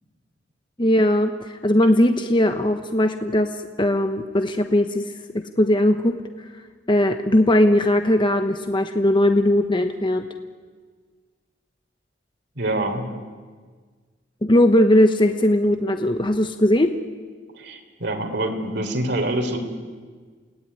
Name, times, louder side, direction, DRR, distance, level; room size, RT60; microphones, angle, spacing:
voice 1, 0.8-3.5 3.8-5.1 5.3-6.2 6.9-10.3 14.4-16.9, left 1 dB, 25° left, 7 dB, 1.0 m, -19 dB
voice 2, 12.6-13.1 17.5-19.6, right 1 dB, 60° right, 4 dB, 3.5 m, -25 dB
29.0 x 18.0 x 9.7 m, 1.5 s
head